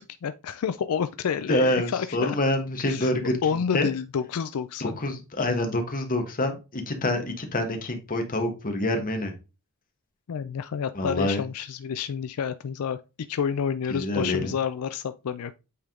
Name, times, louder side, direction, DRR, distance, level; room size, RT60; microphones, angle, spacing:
voice 1, 0.0-2.4 2.9-3.1 3.4-5.0 10.3-15.5, left 7 dB, 80° left, 0.4 m, -29 dB
voice 2, 1.5-3.4 3.7-3.9 4.8-9.3 10.9-11.4 13.9-14.5, left 1 dB, 40° left, 1.4 m, -26 dB
8.4 x 3.5 x 3.7 m
head